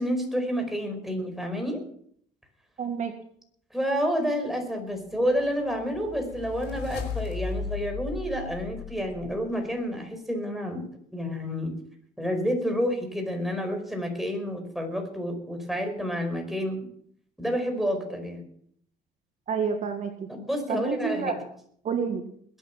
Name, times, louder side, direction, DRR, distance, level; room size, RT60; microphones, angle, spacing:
voice 1, 0.0-1.8 3.7-10.8 11.1-11.7 12.2-16.8 17.4-18.4 20.3-21.4, equal, ahead, 4 dB, 5.0 m, -29 dB
voice 2, 2.8-3.1 19.5-20.3 20.7-21.3 21.8-22.3, right 6 dB, 45° right, 5 dB, 1.8 m, -29 dB
sound 1, 5.4-9.7, left 5 dB, 80° left, 2.9 m, -36 dB
21.0 x 9.2 x 5.8 m, 0.64 s
cardioid pair, 110°, 17 cm